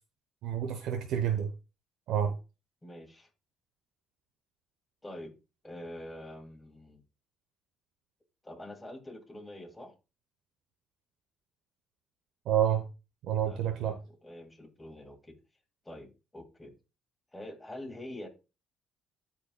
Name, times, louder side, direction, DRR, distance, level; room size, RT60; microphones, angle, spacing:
voice 1, 0.4-1.5 2.1-2.3 12.5-12.8 13.2-14.0, right 9 dB, 75° right, 6 dB, 0.9 m, -28 dB
voice 2, 2.8-3.3 5.0-5.3 5.6-7.0 8.4-9.9 13.4-15.4 15.8-16.7 17.3-18.3, left 1 dB, 15° left, 3 dB, 2.1 m, -45 dB
13.0 x 4.5 x 2.3 m, 0.29 s
supercardioid pair, 70°, 0 cm